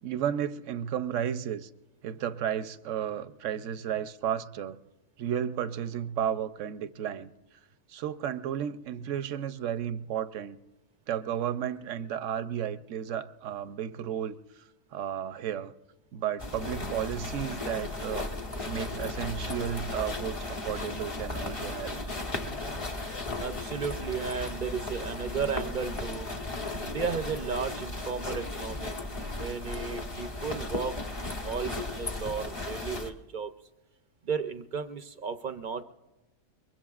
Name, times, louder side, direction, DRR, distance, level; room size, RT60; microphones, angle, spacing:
voice 1, 0.0-1.7 2.0-4.8 5.2-7.3 7.9-10.6 11.1-14.4 14.9-15.7 16.1-18.3 18.7-22.0, right 9 dB, 75° right, 1.0 m, -33 dB
sound 1, 16.4-33.1, left 2 dB, 30° left, 1.0 m, -35 dB
voice 2, 23.4-26.3 26.8-29.0 29.3-33.5 34.2-35.8, right 6 dB, 50° right, 0.7 m, -34 dB
23.5 x 22.0 x 2.4 m
omnidirectional pair, 1.3 m